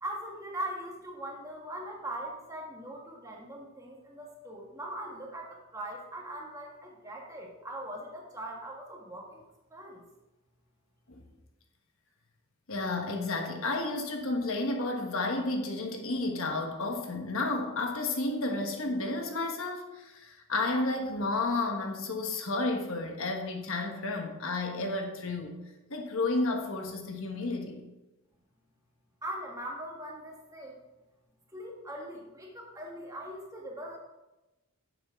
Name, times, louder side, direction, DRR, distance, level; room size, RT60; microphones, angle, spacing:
voice 1, 0.0-9.4 9.7-10.0 29.2-30.7 31.5-34.0, right 1 dB, 15° right, -1 dB, 1.5 m, -41 dB
voice 2, 12.7-25.5 25.9-27.8, left 2 dB, 65° left, 3 dB, 1.3 m, -32 dB
9.7 x 7.3 x 3.6 m, 1.0 s
head